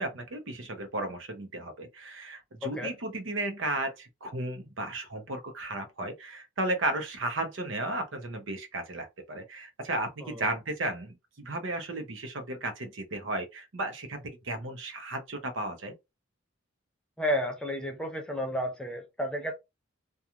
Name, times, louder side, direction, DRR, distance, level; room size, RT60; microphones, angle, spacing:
voice 1, 0.0-15.9, right 2 dB, 65° right, 0.7 m, -34 dB
voice 2, 2.6-2.9 10.2-10.5 17.2-19.5, equal, 5° left, 0.5 m, -32 dB
2.9 x 2.3 x 2.3 m
head